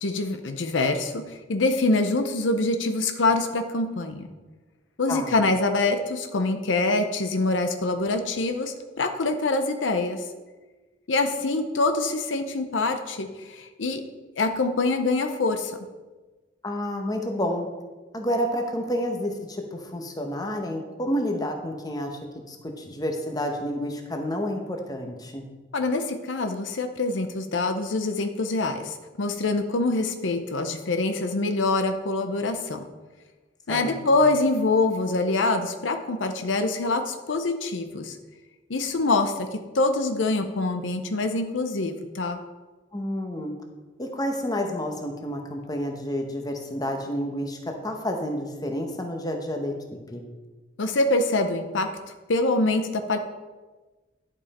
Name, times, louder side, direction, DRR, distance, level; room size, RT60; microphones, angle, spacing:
voice 1, 0.0-4.3 5.0-10.3 11.1-14.0 14.4-15.7 25.7-32.8 33.7-38.2 38.7-42.4 50.8-51.9 52.3-53.2, left 2 dB, 85° left, 7 dB, 0.7 m, -25 dB
voice 2, 16.6-17.7 18.1-22.2 22.5-25.5 33.7-34.3 42.9-43.5 44.0-49.7 50.1-50.3, equal, 20° left, 3 dB, 1.0 m, -30 dB
11.0 x 5.4 x 4.2 m, 1.3 s
head